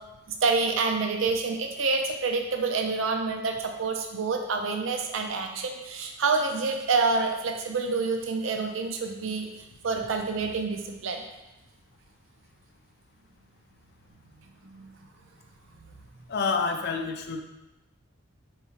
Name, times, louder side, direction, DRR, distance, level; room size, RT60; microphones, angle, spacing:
voice 1, 0.4-9.5 9.8-11.2 14.6-14.9, right 4 dB, 70° right, 4 dB, 0.5 m, -27 dB
voice 2, 16.3-17.4, left 4 dB, 50° left, 5 dB, 0.4 m, -28 dB
4.6 x 3.0 x 2.8 m, 0.98 s
head